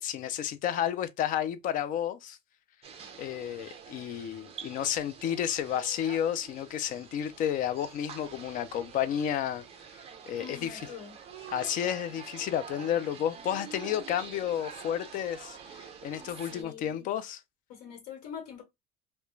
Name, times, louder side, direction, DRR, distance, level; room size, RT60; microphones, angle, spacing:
voice 1, 0.0-2.4 3.2-9.6 10.3-10.8 11.5-17.4, left 10 dB, 45° left, 0.4 m, -31 dB
sound 1, 2.8-16.6, right 7 dB, 30° right, 0.5 m, -47 dB
voice 2, 10.4-11.1 16.4-17.1 17.7-18.6, left 8 dB, 80° left, 1.1 m, -44 dB
2.3 x 2.1 x 3.0 m
cardioid pair, 150°, 19 cm